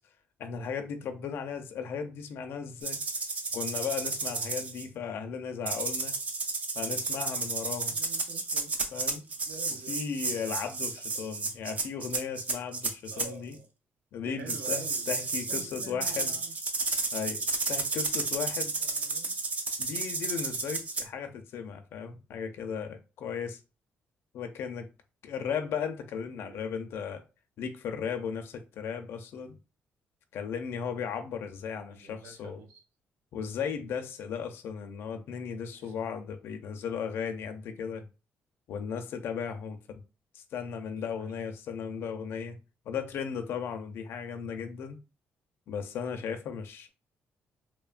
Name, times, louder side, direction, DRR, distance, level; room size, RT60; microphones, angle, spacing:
voice 1, 0.4-3.0 3.5-6.1 6.7-8.0 8.9-9.3 9.9-13.5 14.1-16.4 17.1-17.4 17.7-18.7 19.8-23.6 24.3-24.9 25.2-27.2 27.6-29.6 30.3-32.6 33.3-38.1 38.7-40.0 40.3-42.6 42.9-45.0 45.7-46.9, left 7 dB, 70° left, 0.4 m, -36 dB
sound 1, 2.8-4.8 5.7-13.3 14.5-21.0, right 3 dB, 35° right, 0.4 m, -32 dB
voice 2, 7.9-8.8 9.4-10.0 13.1-13.7 14.2-15.2 15.5-16.6 18.8-19.3 26.4-26.6 31.9-32.8 35.7-35.9 41.0-41.3, right 5 dB, 85° right, 0.5 m, -48 dB
3.0 x 2.2 x 2.4 m
cardioid pair, 150°, 4 cm